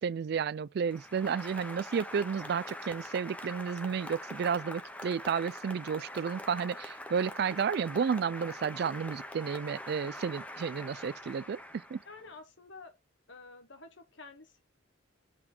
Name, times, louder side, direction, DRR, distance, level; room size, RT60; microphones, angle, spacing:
voice 1, 0.0-11.6 11.9-12.0, right 6 dB, 55° right, 0.3 m, -32 dB
Applause, 0.8-12.4, left 1 dB, 5° left, 0.7 m, -44 dB
voice 2, 10.5-11.0 12.0-12.9 13.3-14.6, left 3 dB, 65° left, 1.3 m, -51 dB
7.8 x 3.7 x 4.4 m
head